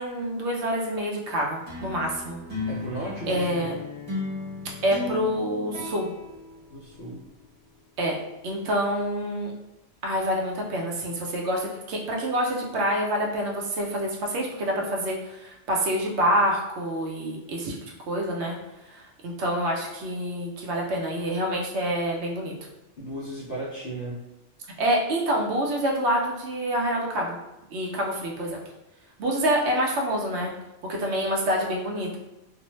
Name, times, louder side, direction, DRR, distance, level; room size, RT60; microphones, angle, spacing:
voice 1, 0.0-2.4 3.3-3.7 4.8-6.1 8.0-8.2 8.4-9.5 10.0-17.7 18.0-18.6 18.9-22.5 24.8-27.4 27.7-28.6 29.2-30.5 30.9-32.2, equal, 70° right, -1 dB, 0.8 m, -27 dB
sound 1, 1.7-7.3, left 3 dB, 25° right, 0.9 m, -36 dB
voice 2, 2.7-3.7 6.7-7.2 23.0-24.2, right 1 dB, 60° left, -4 dB, 0.6 m, -35 dB
2.5 x 2.0 x 3.0 m, 0.98 s
omnidirectional pair, 1.2 m